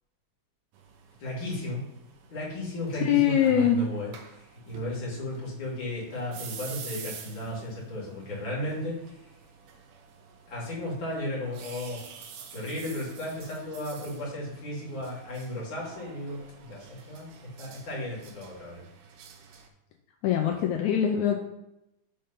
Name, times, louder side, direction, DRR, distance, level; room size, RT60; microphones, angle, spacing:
sound 1, 0.7-19.7, right 7 dB, 80° right, 2.1 m, -48 dB
voice 1, 1.2-1.8 2.3-4.1 4.7-9.0 10.5-12.2 12.5-18.8, left 1 dB, 40° left, -5 dB, 2.5 m, -34 dB
voice 2, 3.0-3.8 20.2-21.4, left 10 dB, 80° left, 2 dB, 1.8 m, -23 dB
6.6 x 3.7 x 5.5 m, 0.86 s
omnidirectional pair, 3.8 m